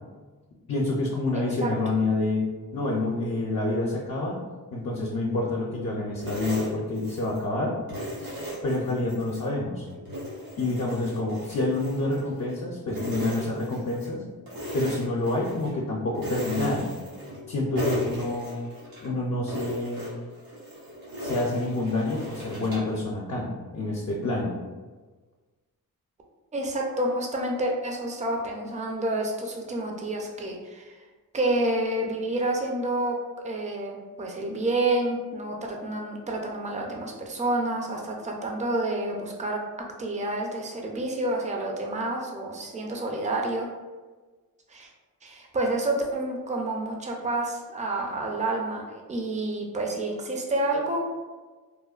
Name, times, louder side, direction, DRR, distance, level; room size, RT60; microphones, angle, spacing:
voice 1, 0.7-4.4 4.7-7.8 8.2-8.3 8.6-9.8 10.6-14.2 14.7-16.8 17.5-18.6 19.0-20.1 21.2-24.5, left 2 dB, 50° left, -3 dB, 0.5 m, -28 dB
voice 2, 1.3-1.7 26.5-31.0 31.3-33.2 33.4-39.6 40.0-43.7 44.7-44.9 45.2-51.2, right 2 dB, 20° right, 0 dB, 0.4 m, -29 dB
sound 1, 6.2-7.5 7.9-9.5 9.9-12.6 12.9-14.1 14.5-15.7 16.2-17.5 17.8-19.1 19.5-23.0, equal, 90° right, 1.0 m, -37 dB
3.0 x 2.1 x 2.3 m, 1.3 s
cardioid pair, 70°, 35 cm